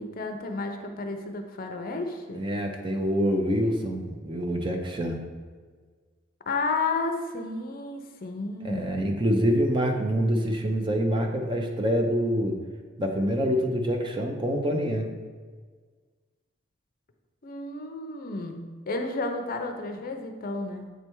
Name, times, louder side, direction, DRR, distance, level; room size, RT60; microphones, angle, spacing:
voice 1, 0.0-2.4 6.5-8.9 17.4-20.9, left 3 dB, 45° left, 5 dB, 0.6 m, -32 dB
voice 2, 2.3-5.2 8.6-12.6 13.0-15.1, equal, 25° right, 3 dB, 0.6 m, -26 dB
7.9 x 3.3 x 4.5 m, 1.5 s
head